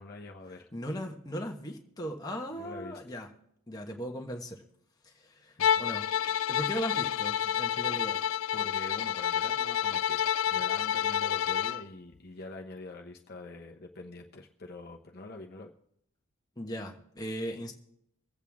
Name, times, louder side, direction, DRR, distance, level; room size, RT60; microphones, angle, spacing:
voice 1, 0.0-0.7 2.5-3.0 5.6-5.9 8.5-15.7, left 2 dB, 45° left, 0 dB, 1.0 m, -45 dB
voice 2, 0.7-3.3 3.7-4.6 5.0-6.1 6.5-8.3 16.6-17.7, equal, 15° left, 1 dB, 1.3 m, -38 dB
Bowed string instrument, 5.6-11.8, left 9 dB, 70° left, 0.4 m, -29 dB
24.0 x 8.2 x 3.6 m, 0.73 s
head